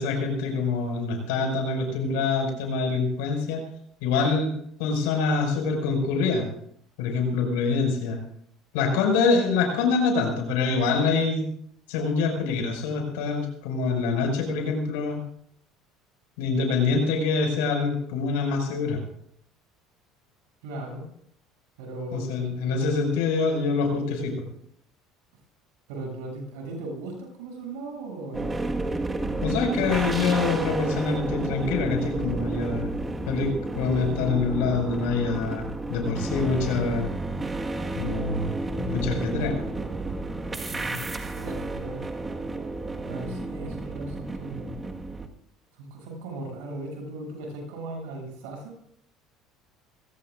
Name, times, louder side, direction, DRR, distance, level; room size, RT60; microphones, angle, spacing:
voice 1, 0.0-3.6 4.0-4.5 4.8-6.5 7.0-8.2 8.7-11.4 11.9-15.2 16.4-19.0 22.1-24.3 29.4-32.9 33.3-37.1 38.0-38.5 38.8-39.6, left 4 dB, 80° left, 3 dB, 5.7 m, -25 dB
voice 2, 20.6-21.0 21.8-22.3 25.9-28.6 40.7-41.0 41.3-42.1 43.1-44.7 45.7-48.8, right 2 dB, 80° right, 1 dB, 7.4 m, -37 dB
sound 1, 28.3-45.3, right 2 dB, 20° right, 1.6 m, -32 dB
sound 2, 29.2-44.5, left 1 dB, ahead, 3.0 m, -39 dB
24.0 x 17.5 x 2.6 m, 0.68 s
supercardioid pair, 85°, 0 cm